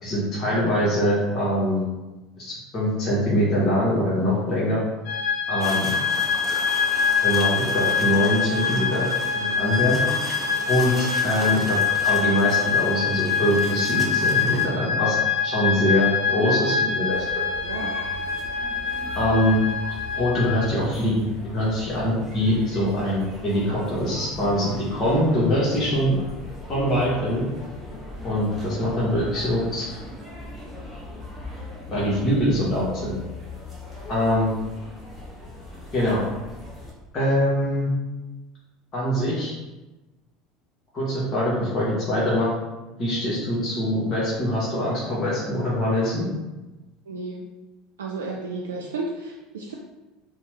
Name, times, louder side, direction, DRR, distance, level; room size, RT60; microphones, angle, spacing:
voice 1, 0.0-1.8 2.4-4.8 5.5-5.9 7.2-9.1 9.3-10.0 10.6-10.9 11.2-15.2 15.4-17.2 19.1-19.6 20.1-21.2 21.5-26.1 26.7-27.4 28.2-29.9 31.9-33.1 34.1-34.5 35.9-36.2 37.1-37.9 38.9-39.5 40.9-42.5 43.0-46.3, equal, 35° left, -8 dB, 1.0 m, -23 dB
sound 1, 5.1-20.6, left 6 dB, 60° left, 0.6 m, -24 dB
sound 2, 5.6-14.7, right 1 dB, 20° right, 0.6 m, -37 dB
sound 3, 17.1-36.9, left 2 dB, ahead, 1.0 m, -39 dB
voice 2, 17.6-18.0 47.1-47.4 48.0-49.7, right 3 dB, 75° right, -2 dB, 0.3 m, -33 dB
2.8 x 2.1 x 3.2 m, 1.1 s
figure-of-eight pair, 70°, 0 cm